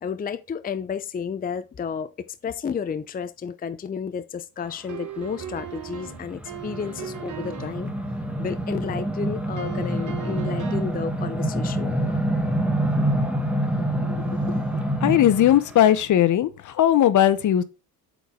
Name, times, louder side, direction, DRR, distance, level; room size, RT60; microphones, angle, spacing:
voice 1, 0.0-7.9 8.4-12.2, left 6 dB, 25° left, 0.6 m, -32 dB
sound 1, 4.9-7.9 9.6-11.0, right 10 dB, 50° right, 1.2 m, -38 dB
sound 2, 5.2-15.6, right 1 dB, 5° right, 1.3 m, -27 dB
voice 2, 15.0-17.6, left 11 dB, 50° left, 0.9 m, -18 dB
7.9 x 4.7 x 3.7 m
supercardioid pair, 80°, 38 cm